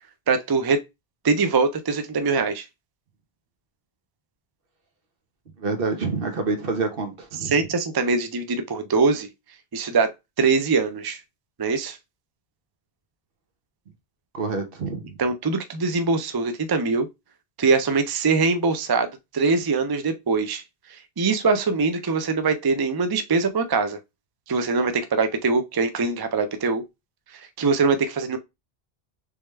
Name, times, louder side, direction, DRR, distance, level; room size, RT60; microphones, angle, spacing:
voice 1, 0.3-0.8 1.2-2.7 7.4-9.3 9.7-11.2 11.6-12.0 15.2-17.1 17.6-20.6 21.2-24.0 24.5-26.8 27.3-28.4, right 4 dB, 40° right, 0.3 m, -23 dB
voice 2, 5.6-7.6 14.3-15.2, right 4 dB, 60° right, 1.1 m, -27 dB
3.4 x 3.3 x 3.1 m
omnidirectional pair, 1.1 m